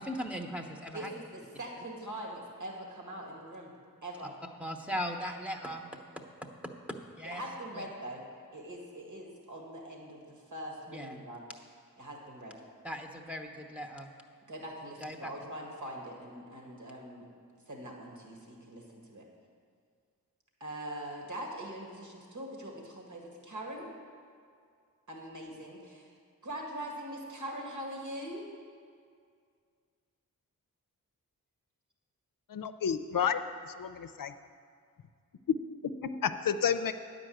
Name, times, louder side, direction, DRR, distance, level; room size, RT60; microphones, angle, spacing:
voice 1, 0.0-1.1 4.6-5.9 6.9-7.4 7.7-7.8 10.9-11.2 12.8-14.1 15.0-15.3, equal, 5° right, 1 dB, 1.0 m, -38 dB
voice 2, 0.9-3.7 4.0-4.3 7.2-11.5 12.0-12.6 14.5-17.3 17.7-19.3 20.6-23.9 25.1-26.1 26.4-28.5, right 1 dB, 55° right, 0 dB, 2.0 m, -42 dB
voice 3, 32.5-33.4 33.7-34.3 35.5-35.6 35.8-36.9, left 7 dB, 65° left, 10 dB, 0.6 m, -30 dB
9.5 x 5.2 x 7.8 m, 2.2 s
cardioid pair, 40°, 36 cm